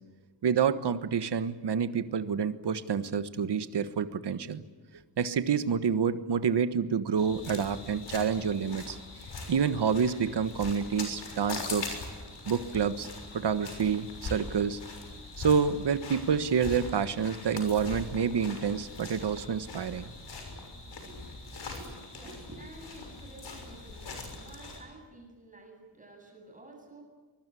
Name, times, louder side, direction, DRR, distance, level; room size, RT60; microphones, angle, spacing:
voice 1, 0.4-4.6 5.2-9.0 9.5-12.0 12.5-13.1 13.3-14.8 15.4-20.1, right 6 dB, 70° right, 12 dB, 1.4 m, -28 dB
sound 1, 7.2-24.8, left 3 dB, 75° left, 6.4 m, -42 dB
voice 2, 20.4-27.0, right 2 dB, 20° right, 1 dB, 7.8 m, -51 dB
24.0 x 22.5 x 8.5 m, 1.4 s
wide cardioid pair, 175°, 43 cm